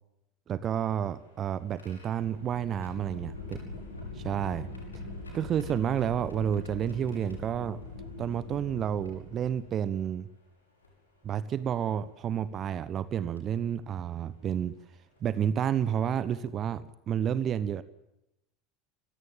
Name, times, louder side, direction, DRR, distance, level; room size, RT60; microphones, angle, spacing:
voice 1, 0.5-3.6 4.2-4.7 5.3-7.8 8.2-10.3 11.2-14.7 15.2-17.8, right 9 dB, 35° right, 16 dB, 1.1 m, -30 dB
sound 1, 0.6-9.9 10.8-10.9 12.4-12.6 13.4-13.6 15.2-15.3 15.7-15.9, left 2 dB, 80° left, 6.0 m, -43 dB
26.0 x 16.0 x 7.5 m, 0.90 s
figure-of-eight pair, 75°, 0 cm